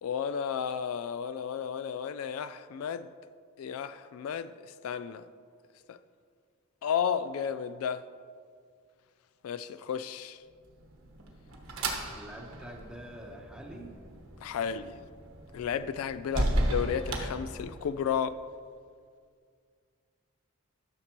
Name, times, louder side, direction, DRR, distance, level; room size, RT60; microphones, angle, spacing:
voice 1, 0.0-3.1 3.6-5.2 5.9-6.0 6.8-8.0 9.4-10.4 14.4-15.0 15.5-18.4, left 7 dB, 80° left, 0.3 m, -33 dB
sound 1, 10.7-18.1, right 1 dB, 70° right, 1.2 m, -35 dB
voice 2, 12.1-13.9 14.6-14.9 16.3-16.5, equal, 5° right, 0.9 m, -46 dB
13.5 x 6.6 x 2.9 m
head